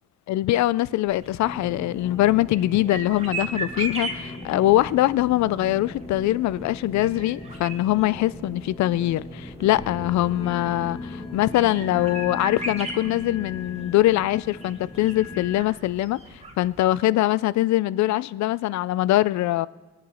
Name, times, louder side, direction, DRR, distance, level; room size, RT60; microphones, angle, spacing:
voice 1, 0.3-19.7, left 15 dB, 65° left, 0.4 m, -23 dB
sound 1, 1.1-16.9, right 3 dB, 20° right, 2.2 m, -39 dB
sound 2, 1.4-15.6, left 2 dB, 15° left, 2.0 m, -38 dB
20.5 x 9.1 x 4.3 m
cardioid pair, 90°, 30 cm